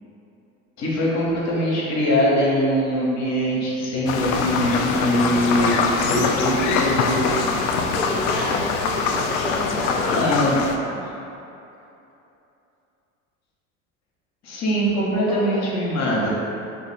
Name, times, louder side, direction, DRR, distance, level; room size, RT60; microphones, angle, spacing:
voice 1, 0.8-5.7 6.1-7.3 10.0-10.6 14.4-16.3, equal, 40° left, -5 dB, 1.1 m, -22 dB
sound 1, 4.1-10.8, left 4 dB, 60° left, 0.5 m, -23 dB
voice 2, 7.9-10.1 15.3-15.7, left 1 dB, ahead, -9 dB, 0.6 m, -29 dB
2.9 x 2.7 x 4.2 m, 2.9 s
hypercardioid pair, 80°, 41 cm